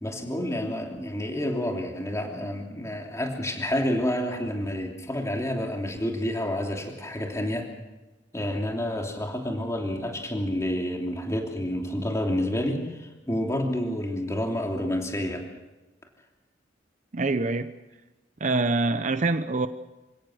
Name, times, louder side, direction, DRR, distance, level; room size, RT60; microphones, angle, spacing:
voice 1, 0.0-7.7 8.3-15.4, left 1 dB, 15° left, 3.0 m, -29 dB
voice 2, 17.1-17.7 18.4-19.7, right 3 dB, 40° right, 0.8 m, -25 dB
28.0 x 17.0 x 6.4 m
head